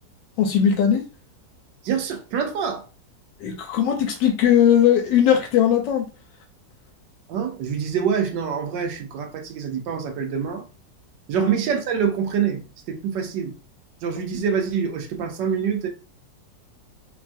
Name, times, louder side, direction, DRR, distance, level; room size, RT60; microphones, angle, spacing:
voice 1, 0.4-1.0 3.4-6.1 11.4-11.5, left 9 dB, 80° left, 1.2 m, -19 dB
voice 2, 1.8-2.8 7.3-10.7 11.3-12.6 12.9-13.5 14.0-15.9, right 7 dB, 80° right, 1.3 m, -25 dB
3.3 x 2.3 x 2.5 m
omnidirectional pair, 2.0 m